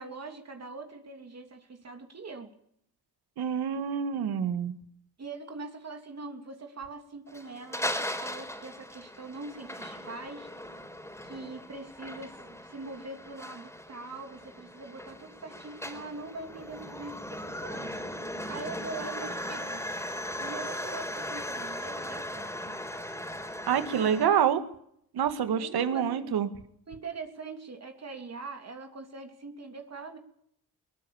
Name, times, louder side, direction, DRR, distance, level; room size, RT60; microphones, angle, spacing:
voice 1, 0.0-2.5 5.2-10.5 11.2-17.9 18.5-19.8 20.4-22.8 25.6-26.3 26.9-30.2, right 3 dB, 40° right, 4 dB, 3.2 m, -42 dB
voice 2, 3.4-4.7 23.7-24.6 25.1-26.5, right 8 dB, 75° right, 10 dB, 2.2 m, -27 dB
sound 1, 7.3-24.3, left 1 dB, 5° left, 4.9 m, -38 dB
22.5 x 19.0 x 7.4 m, 0.71 s
cardioid pair, 65°, 38 cm